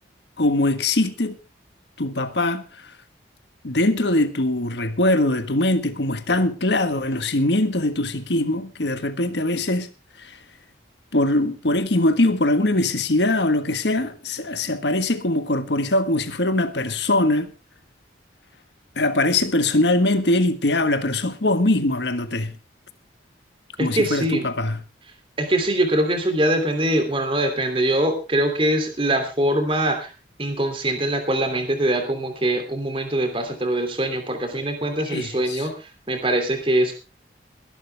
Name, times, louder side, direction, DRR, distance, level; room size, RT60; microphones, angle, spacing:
voice 1, 0.4-1.4 2.0-2.9 3.6-9.9 10.2-10.4 11.1-17.5 18.9-22.6 23.8-24.8 35.1-35.7, left 2 dB, 70° left, 1.5 m, -22 dB
voice 2, 23.8-24.5 25.4-30.1 30.4-37.0, right 1 dB, 30° right, 2.9 m, -23 dB
21.0 x 11.5 x 3.4 m
head